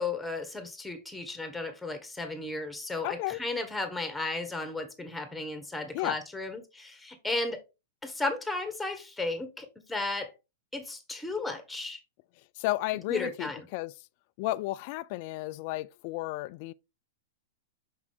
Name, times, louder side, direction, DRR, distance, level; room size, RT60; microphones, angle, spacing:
voice 1, 0.0-7.6 8.0-10.3 10.7-12.0 13.1-13.7, left 2 dB, 5° left, 1.7 m, -34 dB
voice 2, 3.0-3.4 5.9-6.2 12.6-13.9 14.4-16.7, left 19 dB, 50° left, 0.3 m, -33 dB
5.9 x 5.5 x 3.8 m
hypercardioid pair, 110°, 0 cm